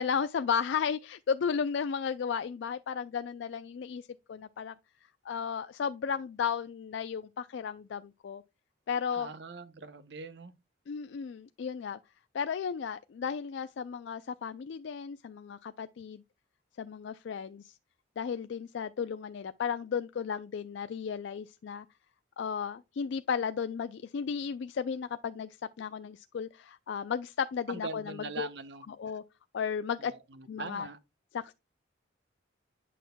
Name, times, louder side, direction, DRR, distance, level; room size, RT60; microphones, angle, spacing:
voice 1, 0.0-4.7 5.3-8.4 8.9-9.3 10.9-12.0 12.3-16.2 16.8-17.8 18.2-21.9 22.4-28.5 28.9-29.2 29.5-30.1 30.5-30.9 31.3-31.5, left 6 dB, 65° left, 0.3 m, -34 dB
voice 2, 9.1-10.5 27.7-28.8 30.0-31.0, right 3 dB, 55° right, 0.8 m, -42 dB
9.1 x 6.1 x 2.2 m
head